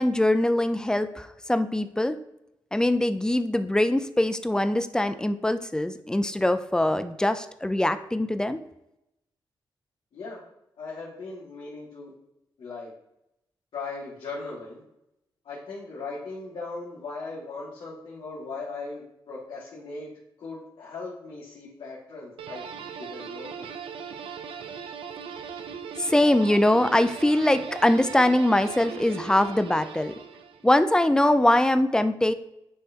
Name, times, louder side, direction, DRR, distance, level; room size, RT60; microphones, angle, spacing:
voice 1, 0.0-2.2 2.7-8.6 26.1-30.1 30.6-32.3, left 1 dB, 10° left, 10 dB, 0.5 m, -22 dB
voice 2, 10.8-12.1 12.6-12.9 13.7-14.8 15.4-20.1 20.4-22.7 23.0-23.7 24.2-24.3, left 3 dB, 75° left, -8 dB, 2.1 m, -38 dB
sound 1, 22.4-30.7, right 6 dB, 85° right, 0.5 m, -39 dB
9.6 x 3.4 x 2.9 m, 0.85 s
cardioid pair, 70°, 9 cm